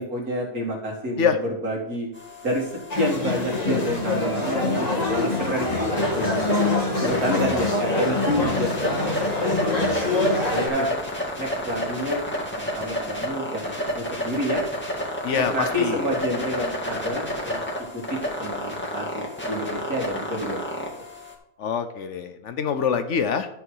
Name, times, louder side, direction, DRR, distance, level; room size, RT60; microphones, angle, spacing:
voice 1, 0.0-1.3 1.6-2.1 2.4-6.7 7.0-9.9 10.5-10.9 11.4-12.2 12.5-14.6 15.3-17.6 17.9-20.8, equal, 85° right, -2 dB, 2.9 m, -29 dB
sound 1, 2.1-21.3, left 1 dB, 10° left, 1.8 m, -31 dB
sound 2, 2.9-10.7, left 2 dB, 30° left, 1.6 m, -25 dB
voice 2, 10.5-10.9 15.2-16.1 18.1-18.2 21.6-23.5, left 6 dB, 60° left, 9 dB, 1.0 m, -25 dB
12.5 x 5.4 x 4.8 m, 0.78 s
omnidirectional pair, 1.5 m